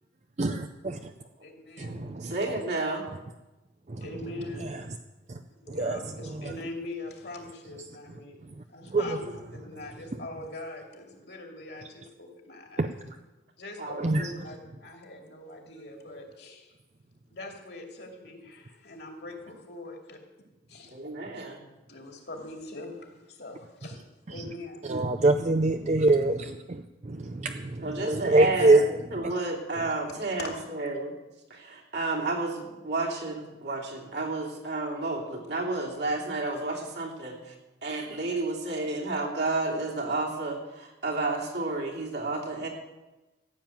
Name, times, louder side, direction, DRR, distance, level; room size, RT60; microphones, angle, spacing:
voice 1, 0.4-1.1 1.8-2.4 3.9-4.1 4.6-4.8 5.3-5.4 5.7-6.5 8.4-8.6 8.9-9.2 12.8-13.2 14.0-14.3 24.3-24.5 24.8-29.3 29.8-29.9, right 2 dB, 35° right, 7 dB, 0.5 m, -26 dB
voice 2, 1.4-2.1 4.0-4.7 5.6-8.4 8.7-12.8 13.6-14.0 14.4-16.7 17.3-20.2 20.7-20.9 21.9-24.0 24.3-24.8 30.4-30.7, left 2 dB, 60° left, 1 dB, 2.6 m, -42 dB
voice 3, 2.2-3.0 13.8-14.3 20.9-21.6 27.8-28.8 29.1-31.1 31.5-37.4 37.8-42.7, right 2 dB, 65° right, -2 dB, 3.0 m, -31 dB
14.5 x 7.5 x 9.1 m, 1.1 s
head